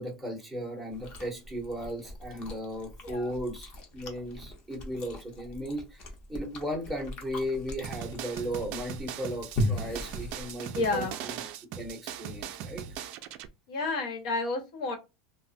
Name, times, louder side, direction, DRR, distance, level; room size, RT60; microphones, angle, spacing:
voice 1, 0.0-11.4 11.8-12.8, equal, ahead, 0.7 m, -36 dB
Chewing mastication, 0.9-11.1, left 1 dB, 35° left, 0.7 m, -38 dB
sound 1, 7.8-13.5, right 9 dB, 45° right, 0.3 m, -39 dB
voice 2, 10.7-11.2 13.7-15.0, left 3 dB, 85° left, 1.0 m, -30 dB
3.0 x 2.1 x 2.5 m
supercardioid pair, 165°, 3 cm